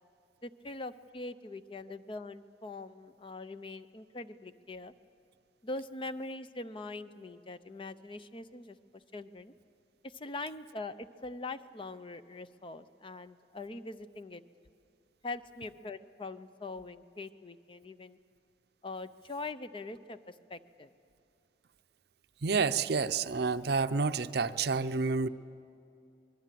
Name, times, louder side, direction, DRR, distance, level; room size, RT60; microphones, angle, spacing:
voice 1, 0.4-4.9 5.6-9.5 10.0-14.4 15.2-18.2 18.8-20.9, left 2 dB, 30° left, 12 dB, 0.6 m, -42 dB
voice 2, 22.4-25.3, right 4 dB, 60° right, 12 dB, 0.6 m, -29 dB
25.5 x 21.5 x 7.6 m, 2.5 s
head